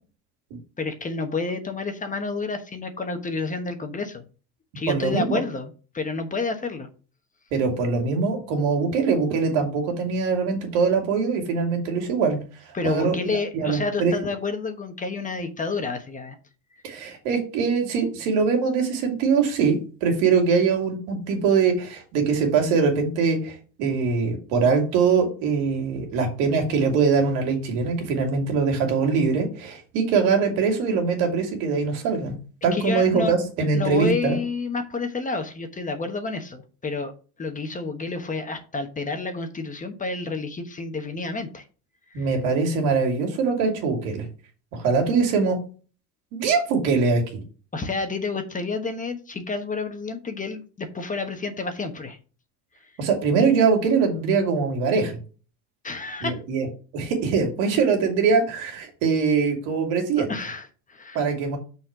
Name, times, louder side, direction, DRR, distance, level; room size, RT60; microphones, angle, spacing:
voice 1, 0.8-4.2 4.7-6.9 12.7-16.4 32.7-33.3 33.7-37.1 37.4-41.6 42.1-42.3 47.7-52.2 55.8-56.4 60.2-61.2, left 4 dB, 20° left, 7 dB, 1.1 m, -29 dB
voice 2, 4.9-5.4 7.5-12.4 12.8-14.1 16.8-32.4 32.6-34.4 42.1-44.3 44.7-45.6 46.3-47.2 53.0-55.2 56.2-56.7 56.9-60.3 61.1-61.6, right 5 dB, 85° right, 2 dB, 2.7 m, -22 dB
6.4 x 4.3 x 5.9 m, 0.37 s
cardioid pair, 125°, 40 cm